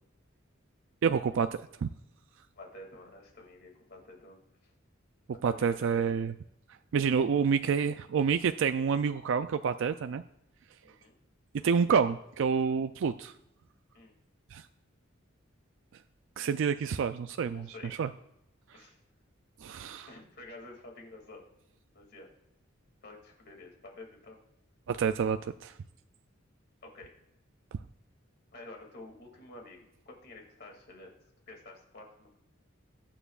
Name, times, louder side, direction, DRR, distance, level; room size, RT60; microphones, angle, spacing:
voice 1, 1.0-1.9 5.4-6.3 6.9-10.2 11.5-13.3 14.5-14.6 16.4-18.1 19.6-20.1 24.9-25.7, right 6 dB, 65° right, 10 dB, 0.4 m, -28 dB
voice 2, 2.6-4.7 5.3-6.1 10.8-11.1 13.9-14.1 17.5-18.0 18.7-19.0 20.1-21.4 21.9-22.3 23.0-24.4 26.8-27.1 28.5-31.1 31.5-32.4, left 2 dB, 55° left, 1 dB, 2.5 m, -50 dB
22.0 x 9.0 x 2.4 m, 0.85 s
head